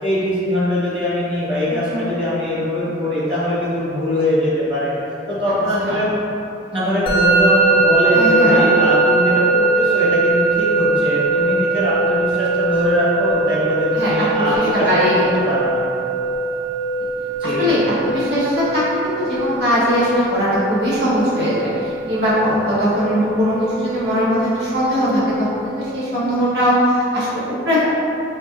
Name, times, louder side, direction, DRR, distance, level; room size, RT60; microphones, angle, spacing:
voice 1, 0.0-4.9 5.3-6.1 6.7-14.9 15.1-15.8 17.4-17.7, left 1 dB, 25° right, -11 dB, 1.1 m, -21 dB
voice 2, 1.7-2.1 5.8-6.0 8.1-8.6 13.9-15.3 17.4-27.9, equal, 65° right, -9 dB, 1.0 m, -20 dB
Musical instrument, 7.1-26.0, right 3 dB, 30° left, 0.4 m, -21 dB
4.3 x 2.5 x 2.4 m, 2.7 s
head